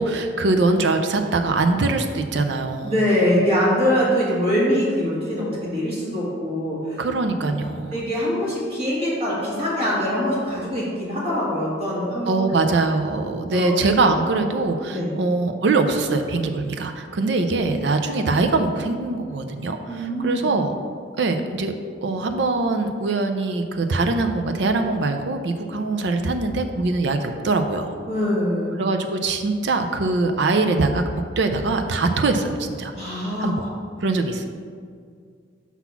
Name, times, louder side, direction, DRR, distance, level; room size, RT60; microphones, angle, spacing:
voice 1, 0.0-2.9 7.0-7.9 12.3-20.7 21.1-21.7 22.0-28.0 28.8-33.6 34.0-34.4, right 3 dB, 65° right, 6 dB, 0.5 m, -22 dB
voice 2, 2.8-7.0 7.4-7.5 7.9-12.4 13.5-13.7 14.9-15.1 19.9-20.4 28.1-28.7 32.9-33.7, equal, 30° right, -7 dB, 1.7 m, -23 dB
5.7 x 4.0 x 5.8 m, 2.1 s
head